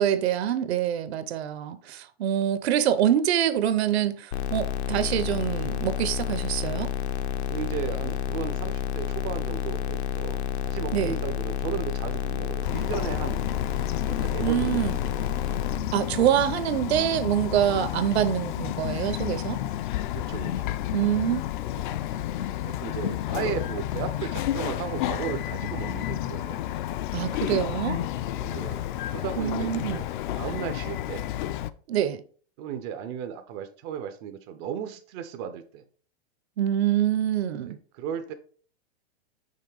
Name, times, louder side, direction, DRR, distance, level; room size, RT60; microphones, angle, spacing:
voice 1, 0.0-6.9 10.9-11.1 14.4-15.0 15.9-19.6 20.9-21.4 27.1-28.0 29.4-30.0 31.9-32.2 36.6-37.8, right 10 dB, 70° right, 0.8 m, -25 dB
sound 1, 4.3-15.8, left 8 dB, 75° left, 0.8 m, -30 dB
voice 2, 7.5-13.4 14.1-15.3 17.7-17.9 20.1-20.8 22.6-26.6 28.3-31.3 32.6-35.8 37.6-38.3, right 9 dB, 25° right, 0.4 m, -35 dB
Bird vocalization bird call bird song, 12.6-31.7, left 13 dB, 50° left, 0.4 m, -31 dB
5.7 x 3.5 x 4.7 m
supercardioid pair, 155°, 32 cm